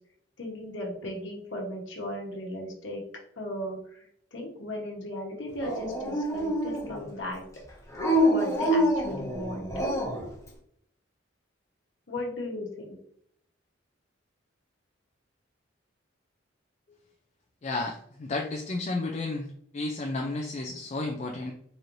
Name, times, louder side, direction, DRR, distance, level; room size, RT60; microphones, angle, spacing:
voice 1, 0.4-3.0 3.4-7.4 8.2-9.7 12.1-13.0, left 1 dB, 70° left, -1 dB, 1.1 m, -36 dB
Dog, 5.6-7.1 7.9-10.3, equal, 15° left, 0.9 m, -26 dB
voice 2, 17.6-19.5 19.7-21.5, left 2 dB, 35° left, 1 dB, 0.4 m, -32 dB
4.1 x 3.1 x 2.6 m, 0.68 s
head